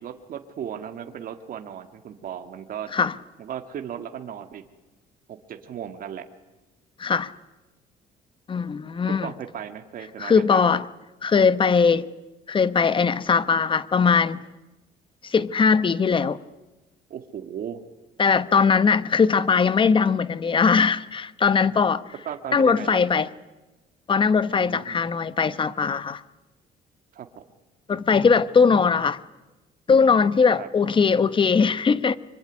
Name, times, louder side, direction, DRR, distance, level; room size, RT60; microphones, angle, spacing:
voice 1, 0.0-2.9 3.4-4.6 5.3-6.3 9.1-10.7 17.1-17.8 22.3-23.2 24.6-25.0 27.1-27.4 30.6-30.7, right 9 dB, 55° right, 1.9 m, -36 dB
voice 2, 7.0-7.3 8.5-9.3 10.2-10.8 11.2-12.1 12.5-14.4 15.2-16.4 18.2-22.0 22.5-23.3 24.1-26.2 27.9-29.2 29.9-32.2, left 5 dB, 30° left, 1.0 m, -20 dB
24.5 x 24.0 x 9.9 m
cardioid pair, 110°, 17 cm